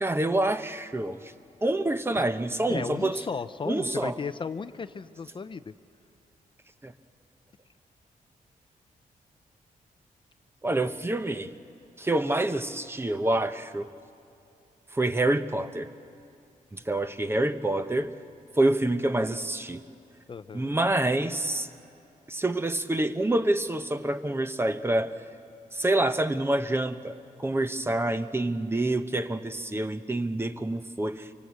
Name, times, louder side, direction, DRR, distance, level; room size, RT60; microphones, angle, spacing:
voice 1, 0.0-1.3 1.6-3.2 3.7-4.1 6.8-6.9 10.6-11.5 12.0-13.9 14.9-15.9 16.7-18.1 18.6-19.8 20.5-21.7 22.3-25.1 25.7-27.1 27.4-31.3, right 1 dB, 15° right, 10 dB, 0.9 m, -27 dB
voice 2, 2.7-5.7 20.3-20.7, left 5 dB, 35° left, 12 dB, 0.5 m, -35 dB
24.5 x 24.0 x 8.3 m, 2.6 s
cardioid pair, 105°, 15 cm